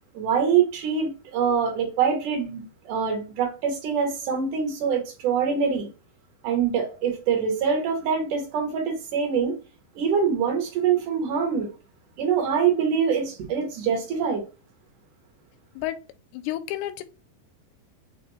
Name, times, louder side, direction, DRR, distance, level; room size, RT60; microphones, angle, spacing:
voice 1, 0.1-5.9 6.4-9.6 10.0-11.7 12.2-14.4, right 6 dB, 70° right, 2.0 m, -24 dB
voice 2, 16.3-17.0, left 14 dB, 85° left, 2.7 m, -31 dB
6.7 x 2.5 x 3.0 m
omnidirectional pair, 4.8 m